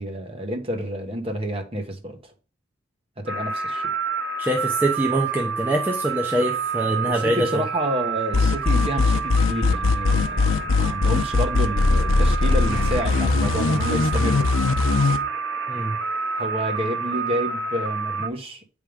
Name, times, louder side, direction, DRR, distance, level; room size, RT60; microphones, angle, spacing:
voice 1, 0.0-2.3 3.2-3.9 7.0-14.5 16.3-18.6, equal, 25° right, 1.1 m, -29 dB
sound 1, 3.3-18.3, right 5 dB, 60° right, 0.7 m, -29 dB
voice 2, 4.4-7.6 15.7-16.0, right 1 dB, 10° right, 0.6 m, -24 dB
sound 2, 8.3-15.2, left 3 dB, 70° left, 0.7 m, -20 dB
8.3 x 3.5 x 5.1 m
head